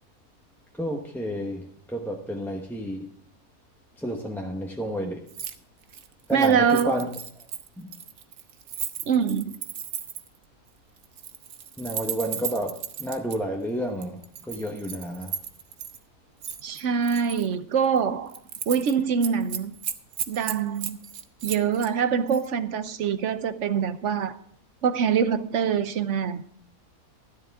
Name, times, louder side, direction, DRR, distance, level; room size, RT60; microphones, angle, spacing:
voice 1, 0.8-3.1 4.0-5.2 6.3-7.1 7.8-7.9 11.8-14.2 14.5-15.3, right 1 dB, ahead, 0.8 m, -30 dB
Keys jangling, 5.3-5.6 5.8-10.4 11.0-13.4 14.0-16.0 16.4-17.5 17.8-18.0 18.3-18.9 19.2-21.9 22.3-22.5, right 8 dB, 75° right, 1.3 m, -35 dB
voice 2, 6.3-7.0 9.1-9.5 16.6-18.3 18.7-19.7 20.3-21.0 21.4-24.4 24.8-26.4, right 7 dB, 60° right, 1.0 m, -24 dB
13.0 x 11.0 x 3.5 m
omnidirectional pair, 1.5 m